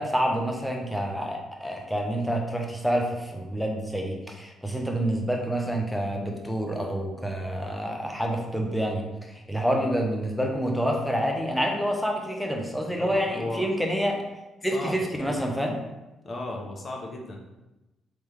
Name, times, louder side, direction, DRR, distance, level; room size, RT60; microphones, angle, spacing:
voice 1, 0.0-14.2 14.6-15.8, equal, ahead, 1 dB, 0.7 m, -28 dB
voice 2, 13.0-13.7 14.7-15.4 16.2-17.4, left 2 dB, 35° left, 0 dB, 0.8 m, -35 dB
3.5 x 3.0 x 3.3 m, 1.0 s
cardioid pair, 90°, 0 cm